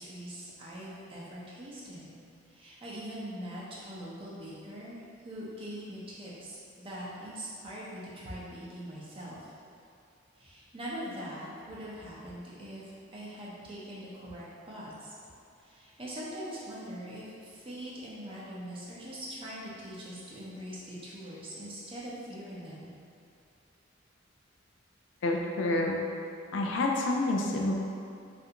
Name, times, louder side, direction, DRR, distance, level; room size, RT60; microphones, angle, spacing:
voice 1, 0.0-2.2 2.5-9.4 10.4-12.8 13.1-15.1 15.6-22.9, equal, 25° right, -7 dB, 0.5 m, -42 dB
voice 2, 25.2-26.0 26.5-27.7, left 2 dB, 60° left, 0 dB, 0.3 m, -28 dB
3.3 x 2.5 x 2.8 m, 2.4 s
head